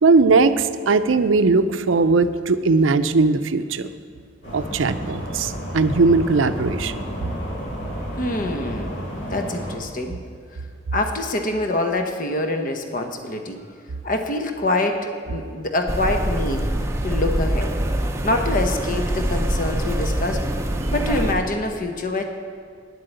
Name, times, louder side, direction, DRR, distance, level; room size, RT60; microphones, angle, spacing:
voice 1, 0.0-3.9 4.5-7.0, right 3 dB, 80° right, 12 dB, 0.5 m, -19 dB
sound 1, 4.4-9.8, equal, 65° left, 2.8 m, -31 dB
voice 2, 8.2-8.9 9.3-10.2 10.9-13.6 14.0-16.7 17.0-17.8 18.2-20.4 20.9-22.3, left 2 dB, 45° left, 5 dB, 0.9 m, -25 dB
sound 2, 15.9-21.3, right 1 dB, 15° right, 0.6 m, -24 dB
10.0 x 7.6 x 8.0 m, 2.1 s
head